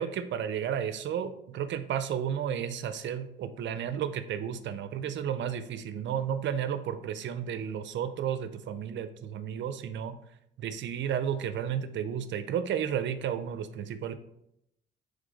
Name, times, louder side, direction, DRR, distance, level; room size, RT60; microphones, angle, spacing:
voice 1, 0.0-10.2 10.6-14.1, right 8 dB, 65° right, 11 dB, 0.5 m, -32 dB
7.3 x 3.4 x 3.8 m, 0.78 s
cardioid pair, 90°, 20 cm